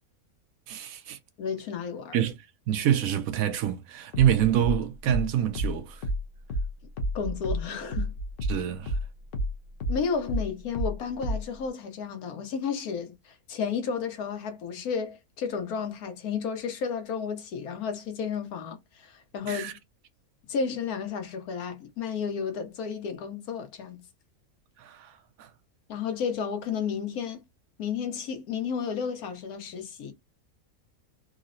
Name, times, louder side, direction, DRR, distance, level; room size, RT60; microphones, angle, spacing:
voice 1, 0.7-1.2 2.1-6.0 8.5-9.0 19.4-19.7 24.8-25.5, right 11 dB, 75° right, 1.0 m, -27 dB
voice 2, 1.4-2.2 7.1-8.1 9.9-19.8 20.5-24.0 25.9-27.4 27.8-30.1, left 6 dB, 80° left, 1.3 m, -32 dB
sound 1, 4.1-9.1 9.3-11.6, equal, 50° left, 0.7 m, -30 dB
3.7 x 2.0 x 2.5 m
omnidirectional pair, 1.6 m